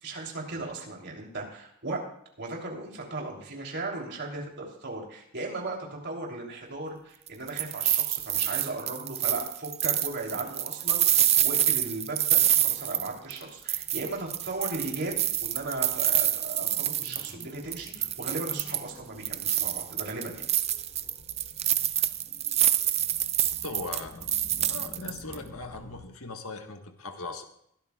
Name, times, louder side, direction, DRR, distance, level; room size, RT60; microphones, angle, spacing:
voice 1, 0.0-2.0 2.4-20.5, right 2 dB, 50° right, 0 dB, 3.3 m, -37 dB
sound 1, 7.3-13.4 13.7-17.4 17.7-18.9 19.2-25.3, right 11 dB, 30° right, 0.4 m, -27 dB
sound 2, 13.5-26.1, left 1 dB, 30° left, 1.3 m, -52 dB
voice 2, 23.6-24.3 24.6-27.4, left 3 dB, 75° left, 4 dB, 1.5 m, -39 dB
21.5 x 12.5 x 2.4 m, 0.71 s
head